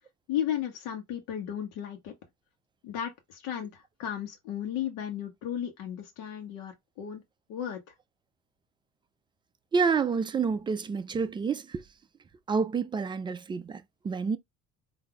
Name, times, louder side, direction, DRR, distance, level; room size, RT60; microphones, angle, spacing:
voice 1, 0.3-2.1 2.8-7.2 7.5-7.9, left 10 dB, 85° left, 1.2 m, -34 dB
voice 2, 9.7-11.8 12.5-14.4, right 5 dB, 15° right, 0.3 m, -28 dB
3.9 x 2.7 x 4.7 m
cardioid pair, 145°, 31 cm